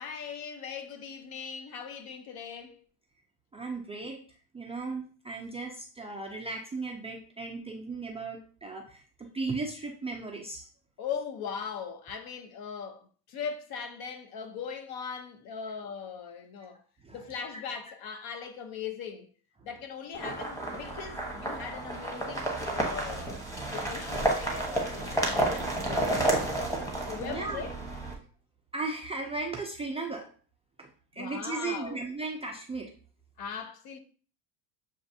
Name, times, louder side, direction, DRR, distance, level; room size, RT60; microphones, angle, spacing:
voice 1, 0.0-2.8 11.0-16.8 17.1-19.3 19.6-23.4 23.7-26.4 27.1-27.8 31.2-32.0 33.4-34.0, left 6 dB, 50° left, 0.8 m, -39 dB
voice 2, 3.5-4.2 4.5-10.7 17.0-17.2 17.5-17.6 27.2-27.6 28.7-30.3 30.8-30.9 31.2-32.9, right 3 dB, 15° right, 0.4 m, -36 dB
sound 1, 20.1-28.1, right 1 dB, 5° left, 1.1 m, -31 dB
6.9 x 2.5 x 2.7 m
supercardioid pair, 100°, 48 cm